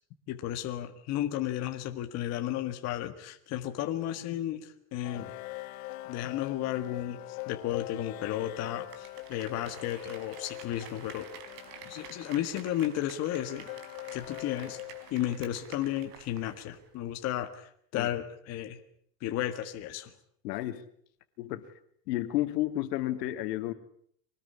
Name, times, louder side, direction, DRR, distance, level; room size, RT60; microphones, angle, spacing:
voice 1, 0.3-5.3 6.1-11.3 11.9-13.7 14.1-14.8 15.1-18.8 19.2-20.1, left 12 dB, 30° left, 6 dB, 1.7 m, -33 dB
sound 1, 5.0-15.5, left 20 dB, 55° left, 1.3 m, -43 dB
Applause, 8.7-16.9 17.2-17.3, right 8 dB, 75° right, 4.8 m, -50 dB
voice 2, 20.4-20.8 21.4-21.7 22.1-23.7, left 15 dB, 75° left, 9 dB, 2.8 m, -31 dB
24.5 x 19.5 x 9.8 m, 0.65 s
supercardioid pair, 175°, 49 cm